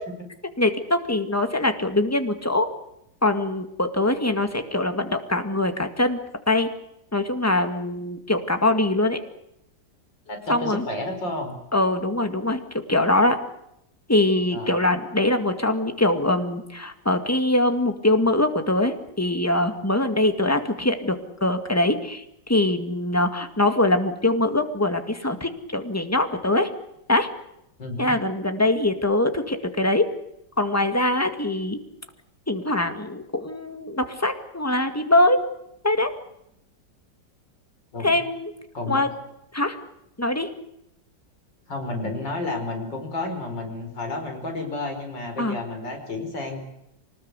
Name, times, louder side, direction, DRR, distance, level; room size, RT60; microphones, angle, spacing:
voice 1, 0.6-2.7 3.2-6.2 6.5-6.7 7.1-9.2 10.5-10.9 11.7-12.6 12.9-13.4 14.1-22.2 22.5-26.7 27.1-27.3 28.0-30.1 30.6-31.8 32.5-35.5 35.8-36.1 38.0-38.5 38.9-39.1 39.5-39.8 40.2-40.5 45.4-45.6, left 1 dB, 10° left, 7 dB, 1.9 m, -23 dB
voice 2, 10.3-11.6 14.5-14.8 27.8-28.2 37.9-38.2 38.7-39.0 41.7-46.7, left 2 dB, 70° left, 5 dB, 5.7 m, -31 dB
25.0 x 20.0 x 8.3 m, 0.79 s
omnidirectional pair, 2.0 m